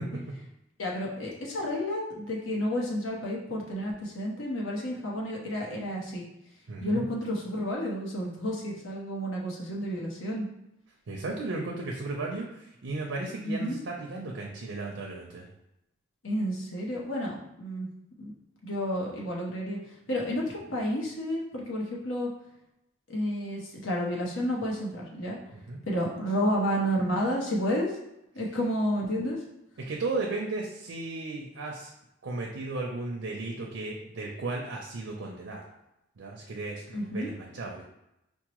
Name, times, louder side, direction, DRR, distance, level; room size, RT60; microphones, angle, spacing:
voice 1, 0.8-6.2 6.8-10.5 13.4-13.8 16.2-17.9 18.2-18.3 18.6-19.8 20.1-22.3 23.1-25.4 25.8-27.9 28.3-29.4 36.9-37.3, equal, 90° left, -2 dB, 1.0 m, -31 dB
voice 2, 6.7-7.0 11.1-15.5 25.5-25.8 29.8-31.9 32.2-35.6 36.2-37.8, right 3 dB, 85° right, -1 dB, 0.5 m, -35 dB
4.6 x 2.1 x 3.0 m, 0.86 s
head